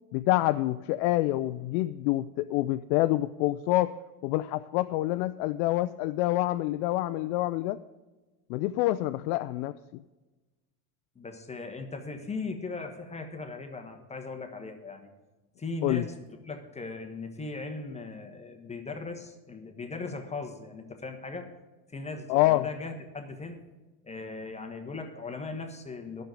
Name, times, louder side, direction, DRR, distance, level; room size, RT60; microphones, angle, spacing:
voice 1, 0.1-3.9 4.2-7.8 8.5-9.7 15.8-16.1 22.3-22.7, left 16 dB, 75° left, 10 dB, 0.5 m, -27 dB
voice 2, 11.1-15.1 15.6-16.2 16.4-21.5 21.9-23.6 24.0-26.2, left 3 dB, 15° left, 5 dB, 1.1 m, -38 dB
10.0 x 6.6 x 9.1 m, 1.2 s
supercardioid pair, 125°, 46 cm